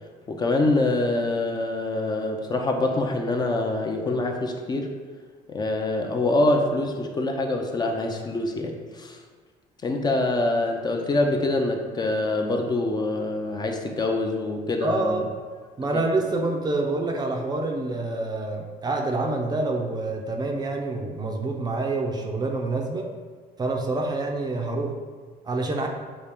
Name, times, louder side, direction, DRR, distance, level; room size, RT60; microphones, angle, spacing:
voice 1, 0.3-4.9 5.5-9.2 9.8-15.2 15.9-16.1, left 2 dB, 25° left, 3 dB, 0.5 m, -25 dB
voice 2, 14.8-15.3 15.8-23.1 23.6-25.0 25.4-25.9, right 2 dB, 25° right, 2 dB, 0.5 m, -27 dB
5.4 x 2.4 x 3.4 m, 1.5 s
cardioid pair, 110°, 16 cm